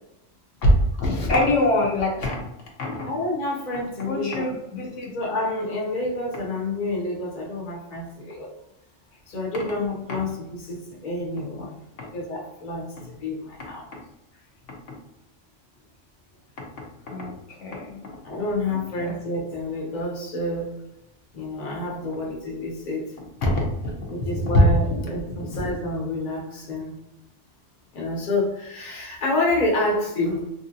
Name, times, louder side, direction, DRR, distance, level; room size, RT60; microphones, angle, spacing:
voice 1, 1.0-2.4 2.8-3.1 4.0-5.1 17.1-17.3 17.6-18.1 18.7-18.8 19.1-19.2 23.4-23.9 24.3-24.6, left 1 dB, 75° left, -2 dB, 1.0 m, -23 dB
voice 2, 3.1-4.5 5.1-8.5 9.3-12.9 13.2-13.9 18.2-20.7 21.3-23.1 24.1-26.9 27.9-30.4, left 2 dB, 40° left, -2 dB, 0.9 m, -28 dB
3.1 x 2.7 x 2.5 m, 0.89 s
omnidirectional pair, 1.3 m